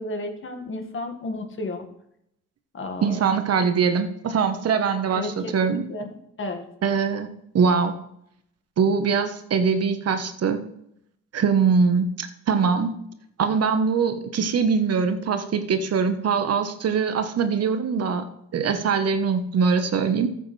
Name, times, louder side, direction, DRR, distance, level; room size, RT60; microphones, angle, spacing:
voice 1, 0.0-1.8 2.7-3.4 5.1-6.6, left 2 dB, 40° left, 5 dB, 1.8 m, -33 dB
voice 2, 3.0-5.9 6.8-7.3 7.5-7.9 8.8-10.6 11.3-13.0 13.4-18.3 18.5-20.3, right 5 dB, 55° right, 8 dB, 1.2 m, -22 dB
14.0 x 7.8 x 3.3 m, 0.76 s
cardioid pair, 90°, 30 cm